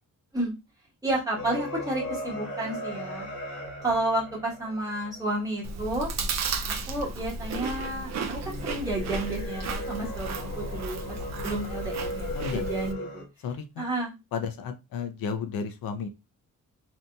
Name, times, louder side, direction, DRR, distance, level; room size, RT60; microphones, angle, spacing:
voice 1, 1.0-3.3 3.8-6.1 6.9-13.0 13.8-14.1, right 2 dB, 10° right, -5 dB, 1.2 m, -31 dB
sound 1, 1.4-6.1 8.3-13.2, left 1 dB, 55° left, 1.2 m, -37 dB
Chewing mastication, 5.6-12.9, right 3 dB, 50° right, 0.4 m, -34 dB
voice 2, 13.4-13.8 14.3-16.1, left 6 dB, 80° left, 8 dB, 0.6 m, -33 dB
2.8 x 2.6 x 2.3 m, 0.25 s
wide cardioid pair, 145°, 34 cm